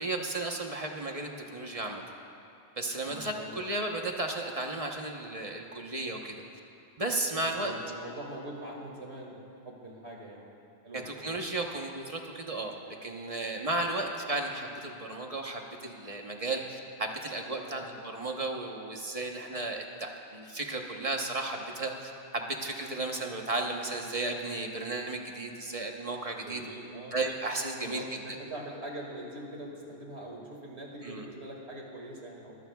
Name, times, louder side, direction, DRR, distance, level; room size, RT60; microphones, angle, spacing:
voice 1, 0.0-2.0 2.8-6.4 7.0-7.7 10.9-26.6 27.1-28.0 31.0-31.3, right 2 dB, 30° right, 2 dB, 1.1 m, -34 dB
voice 2, 3.1-3.5 7.6-9.4 9.6-10.5 10.8-11.3 17.6-17.9 26.4-27.2 27.8-32.6, right 1 dB, 65° right, -1 dB, 2.4 m, -43 dB
23.5 x 15.5 x 2.3 m, 2.6 s
omnidirectional pair, 1.2 m